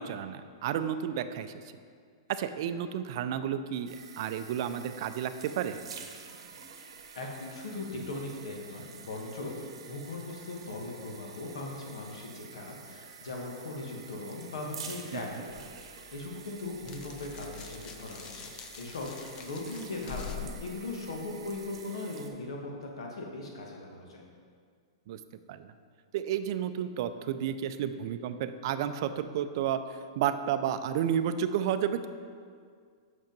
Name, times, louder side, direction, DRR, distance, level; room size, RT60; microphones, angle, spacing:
voice 1, 0.0-1.5 2.3-5.8 15.1-15.2 25.1-25.2 25.5-25.7 26.1-32.1, right 9 dB, 50° right, 11 dB, 0.4 m, -31 dB
sound 1, 3.9-22.3, right 6 dB, 80° right, 0.8 m, -49 dB
voice 2, 7.1-18.5 18.8-24.2, left 2 dB, 85° left, 0 dB, 1.4 m, -39 dB
sound 2, 15.5-21.8, left 7 dB, 25° left, 0.5 m, -46 dB
6.1 x 5.2 x 5.2 m, 2.1 s
hypercardioid pair, 145°, 3 cm